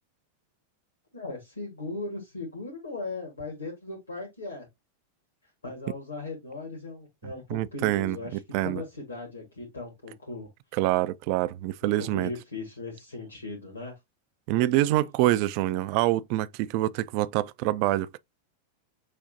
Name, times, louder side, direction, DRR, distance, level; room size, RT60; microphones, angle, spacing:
voice 1, 1.1-4.7 5.6-10.5 11.8-13.9, left 3 dB, 75° left, 1.7 m, -38 dB
voice 2, 7.5-8.2 8.5-8.8 10.7-12.3 14.5-18.2, right 15 dB, 45° right, 0.3 m, -25 dB
6.4 x 2.8 x 2.6 m
figure-of-eight pair, 90°, 0 cm